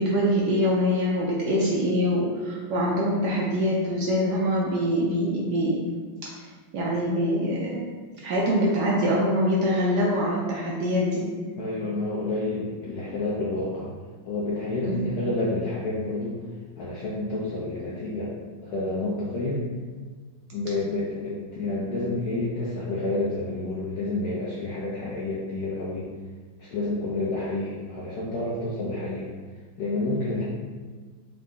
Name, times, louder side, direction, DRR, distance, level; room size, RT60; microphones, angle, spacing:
voice 1, 0.0-5.8 6.2-6.3 6.7-7.9 8.2-11.3 14.8-15.1, equal, 70° right, -4 dB, 1.0 m, -24 dB
voice 2, 11.6-13.9 14.2-16.4 16.8-18.3 18.6-19.6 20.5-26.1 26.6-29.3 29.8-30.4, left 2 dB, 75° left, -6 dB, 0.9 m, -29 dB
3.8 x 2.1 x 3.5 m, 1.5 s
omnidirectional pair, 2.2 m